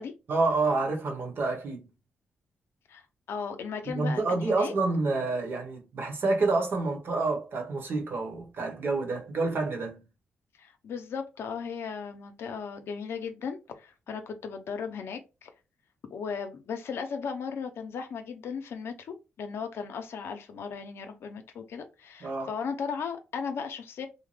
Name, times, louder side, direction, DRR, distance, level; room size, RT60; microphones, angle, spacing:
voice 1, 0.3-1.9 3.9-10.0 22.2-22.5, right 3 dB, 60° right, 1.1 m, -28 dB
voice 2, 2.9-4.7 10.6-15.5 16.1-24.1, left 6 dB, 70° left, 0.6 m, -36 dB
2.7 x 2.1 x 3.2 m
supercardioid pair, 60°, 4 cm